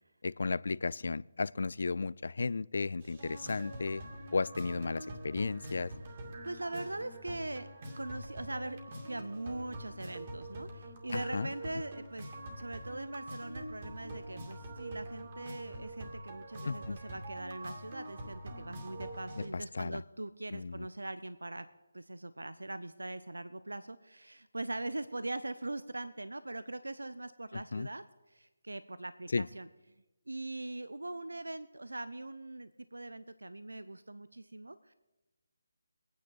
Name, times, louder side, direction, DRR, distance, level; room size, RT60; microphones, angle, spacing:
voice 1, 0.2-4.0 4.3-5.9 11.1-11.5 16.7-17.0 19.7-20.0 20.5-20.9 27.7-27.9 29.3-29.5, left 4 dB, 60° left, 21 dB, 0.3 m, -34 dB
sound 1, 3.0-19.5, right 1 dB, 40° right, 2.3 m, -45 dB
voice 2, 6.4-7.7 7.9-12.3 12.6-21.7 21.9-29.7 30.3-34.9, right 2 dB, 85° right, 13 dB, 0.6 m, -41 dB
21.5 x 9.4 x 4.0 m, 1.1 s
figure-of-eight pair, 155°, 0 cm